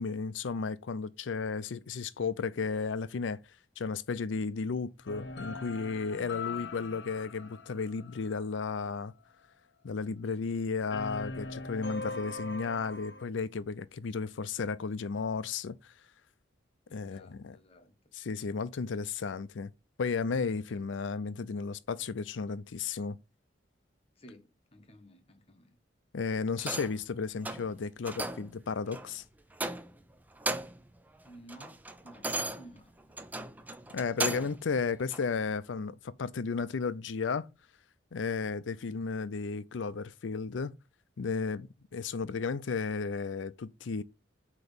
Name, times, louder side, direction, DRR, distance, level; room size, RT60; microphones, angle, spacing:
voice 1, 0.0-3.4 3.8-9.1 9.8-15.8 16.9-17.6 18.1-19.7 20.0-23.2 26.1-29.2 33.9-37.5 38.1-40.7 41.2-44.0, left 5 dB, 85° left, 0.5 m, -34 dB
sound 1, 5.1-8.7 10.9-13.2, left 3 dB, 65° left, 1.0 m, -41 dB
voice 2, 6.3-6.7 7.4-7.5 10.4-10.7 10.9-11.0 16.9-18.0 20.7-20.9 24.2-25.8 31.2-33.2 34.0-34.7, equal, 30° left, 1.1 m, -55 dB
sound 2, 26.6-27.0 27.4-27.7 28.1-28.5 28.9-29.1 29.5-30.0 30.3-30.9 31.3-34.6 35.1-35.2, right 2 dB, 10° right, 0.4 m, -36 dB
7.8 x 3.0 x 5.4 m
head